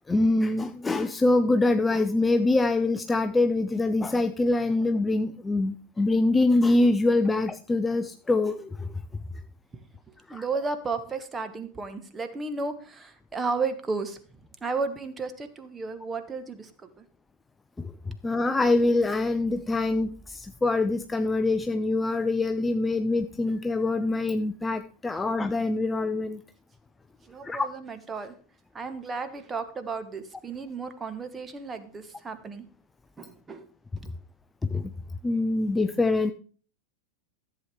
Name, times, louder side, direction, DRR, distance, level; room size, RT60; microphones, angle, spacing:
voice 1, 0.1-9.0 10.3-10.4 17.8-26.4 27.4-27.7 34.6-34.9 35.2-36.3, left 2 dB, 10° left, 9 dB, 0.5 m, -24 dB
voice 2, 10.3-14.2 14.6-16.7 17.0-17.1 27.2-28.3 28.7-32.6 33.2-33.7, right 4 dB, 15° right, 10 dB, 1.3 m, -33 dB
14.0 x 7.9 x 3.5 m, 0.42 s
figure-of-eight pair, 90°, 0 cm